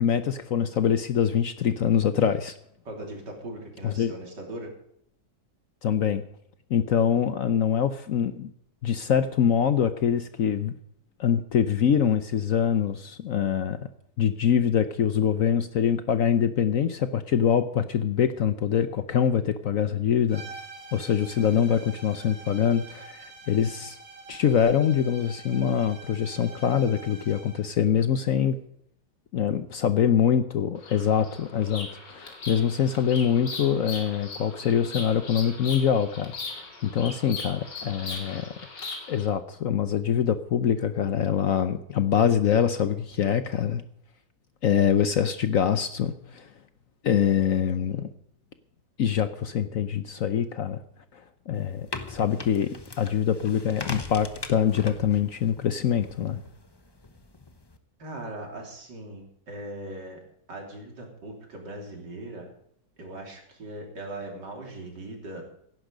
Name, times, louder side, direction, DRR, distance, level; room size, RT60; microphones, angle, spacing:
voice 1, 0.0-2.5 3.8-4.1 5.8-6.2 6.7-8.5 8.8-10.7 11.2-13.8 14.2-20.4 20.9-23.2 23.5-24.0 24.3-28.6 29.3-38.5 39.1-43.8 44.6-46.5 47.0-48.1 49.0-50.8 51.1-56.4, left 8 dB, 60° left, 11 dB, 1.0 m, -24 dB
voice 2, 2.9-4.7 58.0-60.2 60.5-62.5 63.0-65.4, right 1 dB, 70° right, 2 dB, 3.6 m, -39 dB
sound 1, 20.3-27.7, right 3 dB, 90° right, 3.2 m, -46 dB
Bird vocalization bird call bird song, 30.8-39.3, left 3 dB, 75° left, 3.2 m, -39 dB
sound 2, 51.5-57.8, left 3 dB, 20° left, 0.6 m, -41 dB
16.5 x 11.0 x 5.1 m, 0.71 s
omnidirectional pair, 1.9 m